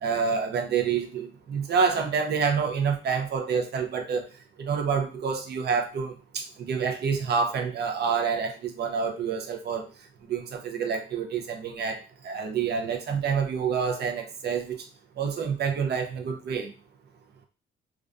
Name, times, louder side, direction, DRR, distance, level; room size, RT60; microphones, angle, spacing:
voice 1, 0.0-4.2 4.6-9.9 10.2-12.0 12.2-14.8 15.2-16.7, right 6 dB, 55° right, 5 dB, 0.6 m, -27 dB
2.4 x 2.2 x 2.5 m, 0.34 s
cardioid pair, 90°, 20 cm